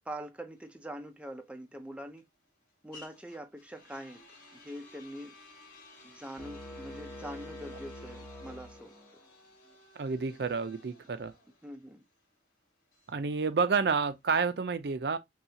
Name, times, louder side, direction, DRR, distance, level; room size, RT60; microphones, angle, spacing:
voice 1, 0.1-2.2 2.8-4.2 4.5-5.3 6.0-8.9 11.6-12.0, right 1 dB, 5° right, 0.4 m, -43 dB
sound 1, 0.5-14.4, left 2 dB, 55° left, 1.8 m, -57 dB
sound 2, 6.4-9.3, left 1 dB, 20° left, 1.5 m, -46 dB
voice 2, 10.0-11.3 13.1-15.2, right 5 dB, 60° right, 0.5 m, -29 dB
5.6 x 2.4 x 2.7 m
head